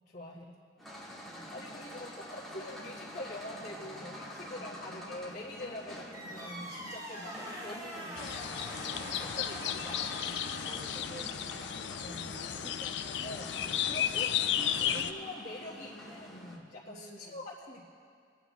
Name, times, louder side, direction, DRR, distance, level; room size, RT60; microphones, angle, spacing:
voice 1, 0.1-0.6 1.3-8.2 9.0-10.5 12.0-12.4 13.2-13.5 13.8-17.9, left 1 dB, 45° left, -7 dB, 1.4 m, -45 dB
sound 1, 0.8-16.6, equal, ahead, 1.4 m, -47 dB
voice 2, 0.9-1.7 2.6-2.7 4.5-4.7 7.9-8.1 10.6-11.3 11.7-13.3 16.8-17.4, right 1 dB, 35° right, -3 dB, 0.9 m, -52 dB
sound 2, 6.1-10.6, equal, 20° right, 1.3 m, -44 dB
sound 3, 8.2-15.1, left 9 dB, 70° left, 0.5 m, -34 dB
25.0 x 8.9 x 3.1 m, 2.3 s
head